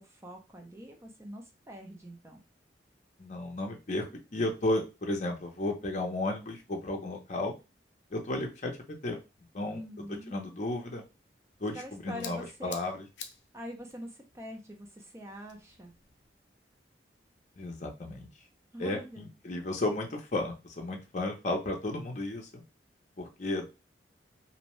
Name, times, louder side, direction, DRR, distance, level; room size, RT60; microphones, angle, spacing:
voice 1, 0.0-2.4 9.7-10.4 11.7-12.8 13.5-15.9 18.7-19.3, equal, 15° right, 2 dB, 0.5 m, -44 dB
voice 2, 3.2-4.1 4.3-7.5 8.1-9.2 9.5-9.8 10.3-11.0 11.6-13.0 17.6-18.3 18.8-22.6 23.2-23.7, left 2 dB, 40° left, 2 dB, 0.6 m, -33 dB
sound 1, 11.4-16.4, left 7 dB, 90° left, 0.5 m, -50 dB
2.6 x 2.1 x 3.0 m, 0.27 s
head